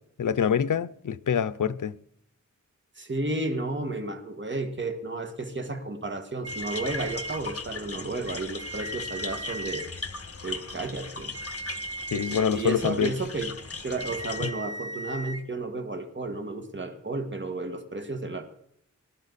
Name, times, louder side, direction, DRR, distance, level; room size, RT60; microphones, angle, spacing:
voice 1, 0.2-2.0 12.1-13.1 14.4-14.5, left 7 dB, 80° left, 0.6 m, -25 dB
voice 2, 3.0-9.9 10.4-11.3 12.1-13.5 13.8-18.4, right 2 dB, 40° right, 1.9 m, -32 dB
sound 1, 6.4-7.4 8.2-9.9 11.2-12.5 13.8-15.4, right 1 dB, 55° right, 1.5 m, -38 dB
sound 2, 6.5-14.5, left 4 dB, 50° left, 1.4 m, -38 dB
20.0 x 11.5 x 4.1 m
wide cardioid pair, 95°, 31 cm